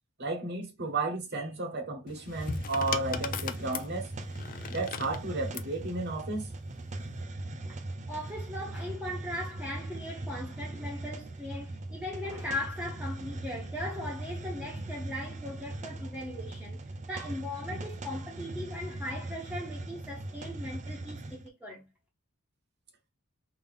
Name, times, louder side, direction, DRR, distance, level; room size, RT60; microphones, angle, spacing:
voice 1, 0.2-4.1 4.7-6.5, right 3 dB, 50° right, 1.1 m, -33 dB
sound 1, 2.1-5.7 6.8-7.2, left 7 dB, 40° left, 0.4 m, -38 dB
Hiss, 2.2-21.5, right 2 dB, 30° right, 0.4 m, -40 dB
voice 2, 8.1-21.9, left 1 dB, 5° right, 0.9 m, -39 dB
3.6 x 2.8 x 3.5 m
head